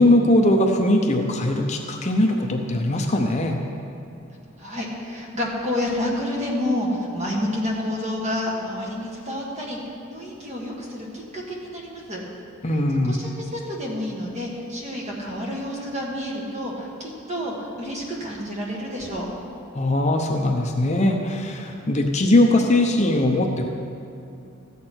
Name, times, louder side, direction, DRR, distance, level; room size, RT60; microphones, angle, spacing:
voice 1, 0.0-3.6 12.6-13.2 19.7-23.7, left 1 dB, 30° left, 3 dB, 0.7 m, -20 dB
voice 2, 4.6-9.8 10.1-12.2 13.1-19.3, left 1 dB, 30° right, -2 dB, 1.6 m, -29 dB
14.0 x 8.3 x 4.4 m, 2.6 s
head